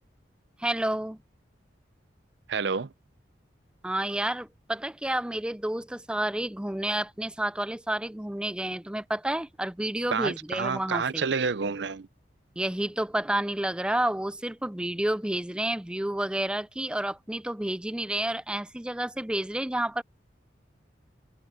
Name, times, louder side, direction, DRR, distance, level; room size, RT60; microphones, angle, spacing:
voice 1, 0.6-1.2 3.8-11.2 12.6-20.0, right 1 dB, 5° right, 0.4 m, -30 dB
voice 2, 2.5-2.9 10.1-12.1, right 5 dB, 70° right, 0.6 m, -29 dB
head